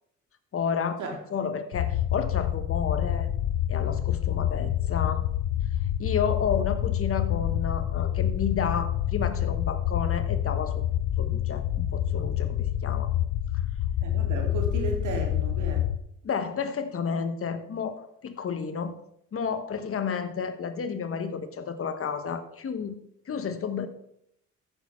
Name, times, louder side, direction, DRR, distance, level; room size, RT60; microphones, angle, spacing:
voice 1, 0.5-1.0 1.3-3.3 3.7-5.3 6.0-10.8 11.2-13.1 16.2-18.9 19.3-23.0 23.3-23.9, left 6 dB, 45° left, 10 dB, 1.2 m, -31 dB
sound 1, 1.7-16.0, left 11 dB, 85° left, 0.7 m, -27 dB
voice 2, 14.0-15.9, right 3 dB, 75° right, 2 dB, 2.8 m, -34 dB
14.0 x 6.5 x 4.4 m, 0.75 s
cardioid pair, 90°, 30 cm